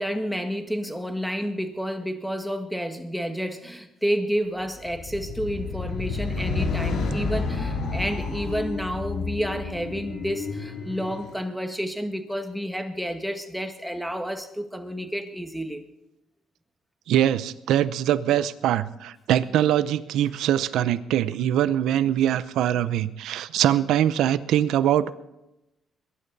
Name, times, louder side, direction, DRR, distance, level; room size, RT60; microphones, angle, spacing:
voice 1, 0.0-15.8, equal, ahead, 6 dB, 1.7 m, -30 dB
sound 1, 4.8-11.3, left 4 dB, 75° left, 3.1 m, -30 dB
voice 2, 17.1-25.1, right 11 dB, 85° right, 15 dB, 0.7 m, -23 dB
22.5 x 11.0 x 4.1 m, 0.91 s
cardioid pair, 90°, 0 cm